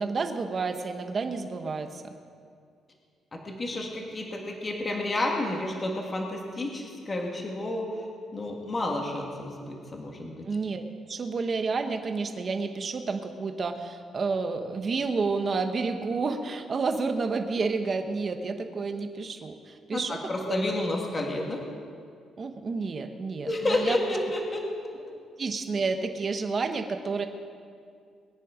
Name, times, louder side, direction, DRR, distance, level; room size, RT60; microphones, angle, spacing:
voice 1, 0.0-2.2 10.5-20.2 20.5-20.7 22.4-24.0 25.4-27.3, right 4 dB, 30° right, 6 dB, 1.1 m, -30 dB
voice 2, 3.3-7.9 8.3-10.4 19.9-21.6 23.5-24.6, left 1 dB, 25° left, 0 dB, 1.9 m, -30 dB
21.5 x 10.0 x 5.0 m, 2.2 s
cardioid pair, 150°, 0 cm